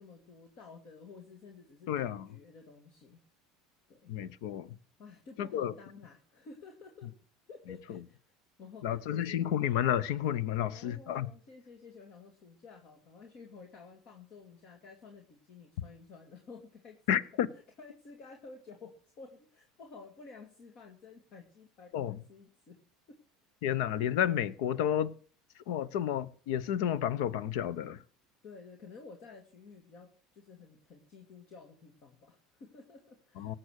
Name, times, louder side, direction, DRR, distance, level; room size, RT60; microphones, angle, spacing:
voice 1, 0.0-3.2 3.9-4.1 5.0-7.1 7.5-8.3 8.6-9.4 10.7-17.2 17.8-22.8 23.1-23.2 28.4-33.6, left 4 dB, 55° left, 2.4 m, -52 dB
voice 2, 1.9-2.3 4.1-4.7 5.4-5.7 7.7-8.0 8.8-11.3 17.1-17.5 21.9-22.2 23.6-25.1 25.7-28.0 33.4-33.5, left 10 dB, 75° left, 0.8 m, -31 dB
17.5 x 7.7 x 6.5 m
supercardioid pair, 95°, 2 cm